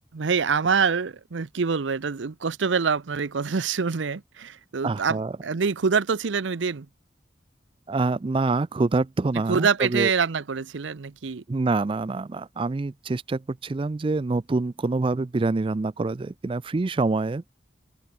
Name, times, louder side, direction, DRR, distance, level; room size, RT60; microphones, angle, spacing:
voice 1, 0.1-6.9 9.5-11.4, right 5 dB, 80° right, 0.7 m, -25 dB
voice 2, 4.8-5.3 7.9-10.1 11.5-17.4, right 3 dB, 30° right, 0.4 m, -26 dB
open air
head